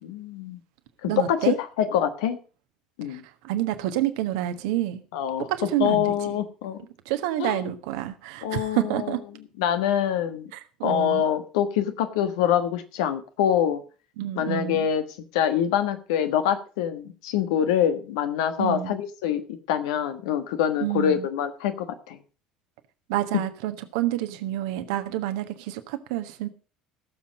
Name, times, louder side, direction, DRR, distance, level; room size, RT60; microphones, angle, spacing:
voice 1, 0.0-0.6 1.0-2.4 3.0-3.2 5.1-5.5 5.8-6.8 7.4-7.6 8.4-9.1 9.6-10.5 10.8-13.8 14.3-15.0 15.3-19.4 19.7-22.2, left 9 dB, 65° left, 9 dB, 1.4 m, -25 dB
voice 2, 1.0-1.6 3.1-5.0 5.5-6.4 7.0-9.2 10.5-11.3 14.2-14.9 18.6-19.0 20.8-21.3 23.1-26.5, right 13 dB, 60° right, 9 dB, 1.3 m, -28 dB
16.5 x 7.3 x 5.2 m, 0.37 s
figure-of-eight pair, 60°, 3 cm